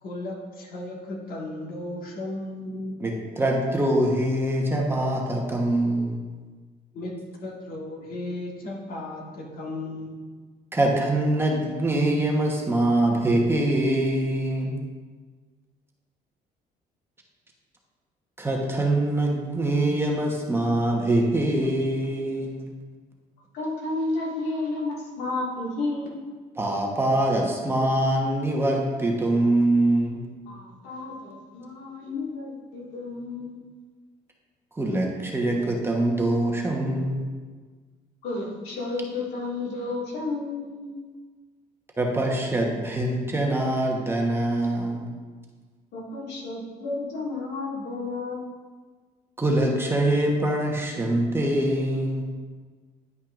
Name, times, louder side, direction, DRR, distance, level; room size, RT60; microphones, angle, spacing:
voice 1, 0.0-3.0 6.9-10.2, left 2 dB, 60° left, -2 dB, 1.8 m, -35 dB
voice 2, 3.0-6.2 10.7-14.8 18.4-22.7 26.6-30.2 34.8-37.2 42.0-45.1 49.4-52.3, right 1 dB, 15° right, -1 dB, 1.1 m, -24 dB
voice 3, 23.5-26.1 30.5-33.6 38.2-40.9 45.9-48.5, left 2 dB, 85° left, -4 dB, 2.0 m, -32 dB
10.5 x 5.4 x 2.5 m, 1.4 s
cardioid pair, 110°, 17 cm